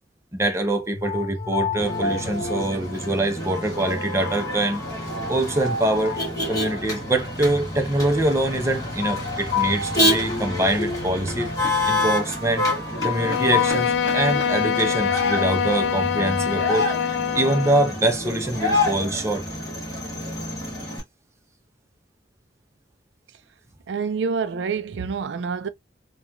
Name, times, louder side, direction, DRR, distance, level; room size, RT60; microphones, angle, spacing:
voice 1, 0.3-4.8 5.3-6.2 6.5-12.6 13.0-19.5, right 1 dB, 15° right, 0.5 m, -24 dB
sound 1, 0.9-13.7, left 4 dB, 70° left, 0.7 m, -31 dB
Motor vehicle (road), 1.8-21.0, left 1 dB, 20° left, 1.1 m, -28 dB
Bowed string instrument, 13.1-18.0, left 7 dB, 90° left, 0.3 m, -24 dB
voice 2, 23.9-25.7, right 5 dB, 85° right, 0.4 m, -27 dB
2.9 x 2.2 x 2.3 m
head